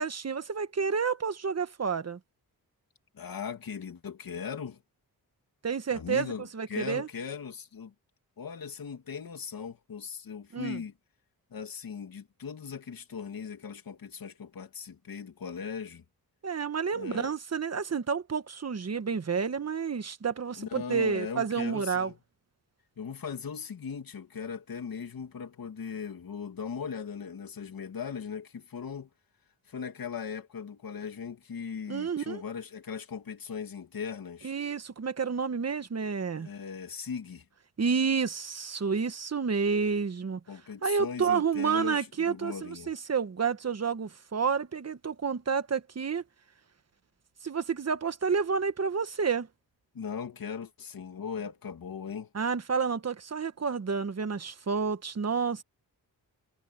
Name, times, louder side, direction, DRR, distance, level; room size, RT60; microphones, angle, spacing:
voice 1, 0.0-2.2 5.6-7.1 10.5-10.8 16.4-22.1 31.9-32.4 34.4-36.5 37.8-40.4 40.8-46.2 47.4-49.5 52.3-55.6, right 5 dB, 45° right, 1.4 m, -30 dB
voice 2, 3.1-4.8 5.9-7.9 8.4-10.9 11.5-16.0 16.9-17.3 20.6-22.2 23.0-29.1 29.7-34.5 36.3-37.4 40.5-42.9 49.9-52.3, left 6 dB, 65° left, 2.8 m, -39 dB
wide cardioid pair, 110°, 37 cm